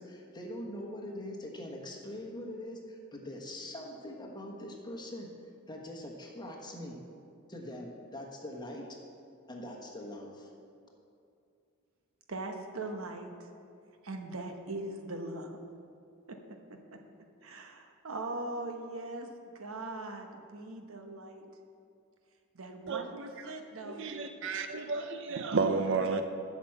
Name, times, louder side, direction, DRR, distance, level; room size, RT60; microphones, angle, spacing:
voice 1, 0.0-5.3 5.7-6.9 7.5-8.9 9.5-10.5, left 1 dB, 20° left, 0 dB, 1.3 m, -42 dB
voice 2, 12.3-13.3 14.0-15.6 16.3-16.4 17.4-19.3 19.5-21.4 22.5-24.0 25.3-26.2, right 2 dB, 80° right, 4 dB, 1.0 m, -40 dB
voice 3, 22.9-23.2 23.9-26.2, right 4 dB, 65° right, 8 dB, 0.5 m, -31 dB
8.2 x 6.0 x 7.8 m, 2.5 s
head